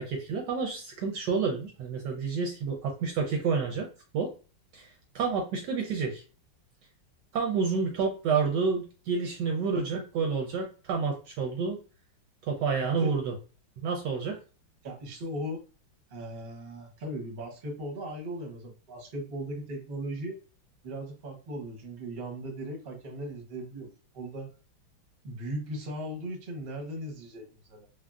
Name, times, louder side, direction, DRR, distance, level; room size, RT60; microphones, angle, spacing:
voice 1, 0.0-3.9 4.1-4.3 4.7-4.9 5.1-6.2 7.3-11.8 12.5-13.3 13.8-14.4, right 5 dB, 75° right, 2 dB, 1.1 m, -29 dB
voice 2, 14.8-15.6 16.1-20.4 20.8-24.5 25.2-27.9, right 1 dB, 50° right, 1 dB, 0.7 m, -38 dB
3.5 x 2.0 x 2.3 m, 0.35 s
omnidirectional pair, 2.2 m